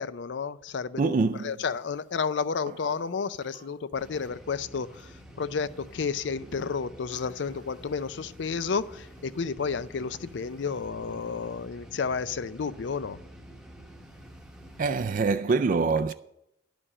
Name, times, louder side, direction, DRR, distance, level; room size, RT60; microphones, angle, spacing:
voice 1, 0.0-13.2, left 5 dB, 65° left, 0.5 m, -31 dB
voice 2, 1.0-1.6 14.8-16.1, right 4 dB, 45° right, 0.4 m, -25 dB
sound 1, 3.9-15.1, equal, 5° right, 0.9 m, -49 dB
11.0 x 5.1 x 8.5 m
head